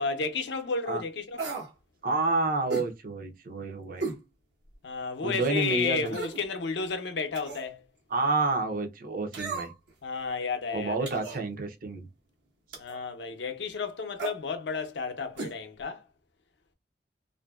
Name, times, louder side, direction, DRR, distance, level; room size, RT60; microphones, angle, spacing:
voice 1, 0.0-1.5 4.8-7.8 10.0-11.1 12.8-16.0, left 4 dB, 75° left, 0.5 m, -32 dB
sound 1, 1.4-1.7 2.7-2.9 4.0-4.2 4.7-4.8 6.1-6.5 7.3-7.7 9.3-9.9 11.1-11.4 12.7-13.0 14.2-14.4 15.4-15.6 15.8-15.9, right 3 dB, 85° right, 1.1 m, -35 dB
voice 2, 2.0-4.0 5.2-6.2 8.1-9.7 10.7-12.1, right 3 dB, 55° right, 0.6 m, -29 dB
2.6 x 2.5 x 2.3 m
head